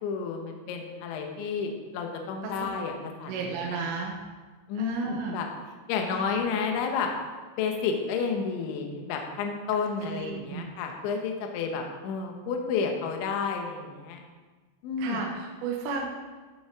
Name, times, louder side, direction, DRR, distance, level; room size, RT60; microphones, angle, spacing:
voice 1, 0.0-3.8 4.7-5.5 5.9-7.1 7.6-14.2 14.8-15.2, left 5 dB, 75° left, 2 dB, 3.3 m, -31 dB
voice 2, 3.3-4.1 4.8-5.4 6.1-6.2 10.0-10.7 15.0-16.1, right 5 dB, 70° right, -2 dB, 3.3 m, -33 dB
14.0 x 7.2 x 4.8 m, 1.4 s
omnidirectional pair, 5.8 m